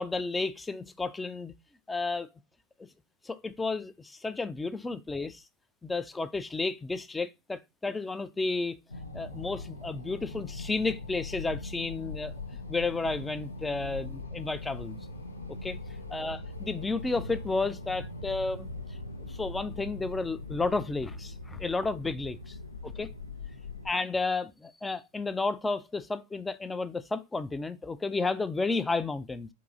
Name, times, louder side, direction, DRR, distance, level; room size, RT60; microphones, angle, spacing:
voice 1, 0.0-1.5 1.9-2.3 3.2-5.4 5.8-8.8 9.1-12.3 12.7-15.0 15.6-15.8 16.1-18.7 19.2-22.6 22.8-23.1 23.9-29.5, left 3 dB, 10° left, 0.3 m, -32 dB
sound 1, 8.9-23.9, left 2 dB, 80° left, 0.5 m, -41 dB
3.7 x 2.6 x 3.8 m
figure-of-eight pair, 90°, 0 cm